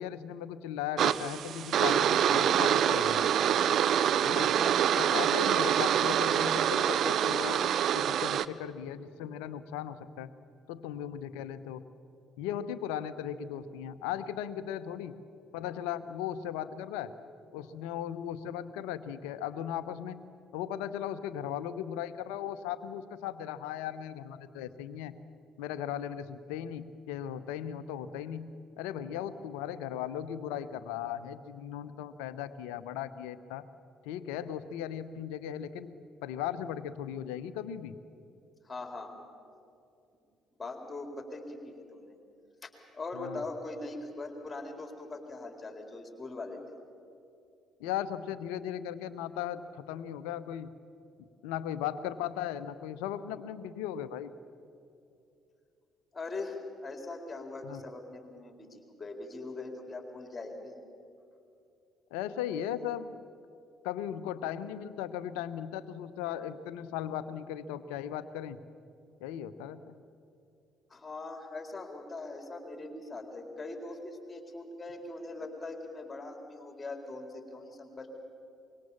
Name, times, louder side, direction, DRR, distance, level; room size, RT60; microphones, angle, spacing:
voice 1, 0.0-3.3 4.2-4.6 5.0-10.3 10.7-11.8 12.4-15.1 15.5-17.1 17.5-20.2 20.5-25.1 25.6-33.6 34.0-35.9 36.2-38.0 43.1-43.4 47.8-50.7 51.4-54.3 57.6-57.8 62.1-63.2 63.8-68.6 69.2-69.9, left 10 dB, 65° left, 13 dB, 0.9 m, -37 dB
sound 1, 1.0-8.5, right 9 dB, 50° right, 0.6 m, -26 dB
voice 2, 4.6-5.1 38.6-39.1 40.6-42.2 42.6-46.6 56.1-60.8 70.9-78.1, left 2 dB, 20° left, 3 dB, 4.3 m, -41 dB
24.5 x 23.0 x 7.2 m, 2.6 s
figure-of-eight pair, 50°, 0 cm